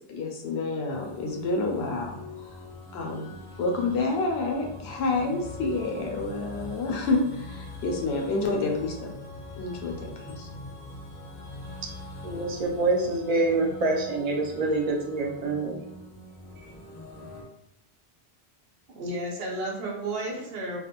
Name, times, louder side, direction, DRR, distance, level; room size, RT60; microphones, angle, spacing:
voice 1, 0.1-2.2 2.9-3.3 3.6-9.1 9.6-10.5, left 3 dB, 80° left, 1 dB, 0.9 m, -28 dB
sound 1, 0.9-17.4, left 2 dB, 45° left, 0.6 m, -43 dB
voice 2, 12.2-15.8, right 2 dB, 50° right, 0 dB, 0.5 m, -26 dB
voice 3, 18.9-20.8, right 1 dB, 70° right, -1 dB, 0.9 m, -32 dB
2.4 x 2.2 x 2.9 m, 0.78 s
omnidirectional pair, 1.0 m